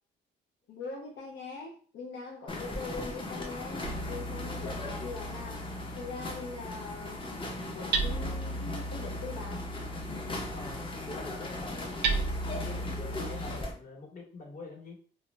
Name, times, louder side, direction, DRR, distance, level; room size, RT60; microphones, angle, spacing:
voice 1, 0.7-5.7 5.9-7.2 7.7-9.6, left 4 dB, 70° left, -1 dB, 0.5 m, -42 dB
sound 1, 2.5-13.7, left 2 dB, 25° left, 0.6 m, -39 dB
Hammer, 3.8-13.6, right 3 dB, 60° right, 0.5 m, -36 dB
voice 2, 10.5-12.2 12.5-15.0, left 3 dB, 40° left, 0 dB, 1.1 m, -46 dB
2.3 x 2.0 x 3.1 m, 0.43 s
cardioid pair, 90°, 20 cm